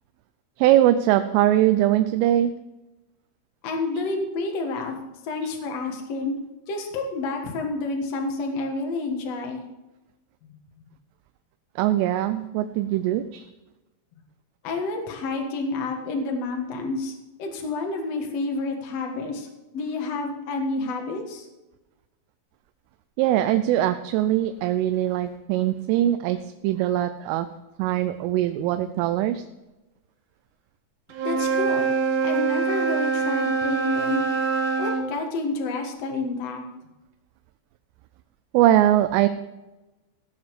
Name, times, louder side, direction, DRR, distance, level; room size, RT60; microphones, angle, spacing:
voice 1, 0.6-2.5 11.8-13.4 23.2-26.4 26.6-27.5 27.8-29.4 38.5-39.3, right 13 dB, 90° right, 9 dB, 3.2 m, -21 dB
voice 2, 3.6-4.9 5.3-6.3 6.7-9.6 14.6-17.1 17.4-19.5 19.7-21.4 31.2-31.9 32.2-34.2 34.8-36.6, left 3 dB, 80° left, 2 dB, 1.4 m, -29 dB
Wind instrument woodwind instrument, 31.1-35.1, right 5 dB, 65° right, 2.4 m, -24 dB
16.5 x 7.2 x 4.8 m, 1.0 s
omnidirectional pair, 5.6 m